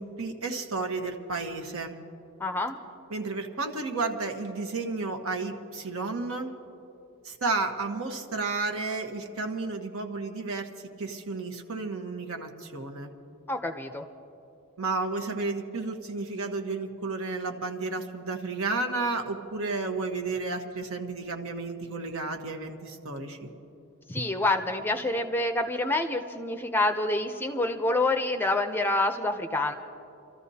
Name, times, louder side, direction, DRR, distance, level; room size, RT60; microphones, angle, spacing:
voice 1, 0.0-1.9 3.1-6.5 7.2-10.7 11.0-13.1 14.8-23.5, right 3 dB, 70° right, 4 dB, 1.2 m, -32 dB
voice 2, 2.4-2.8 13.5-14.0 24.1-29.7, left 2 dB, 10° left, 6 dB, 0.5 m, -27 dB
29.0 x 13.5 x 2.8 m, 2.8 s
head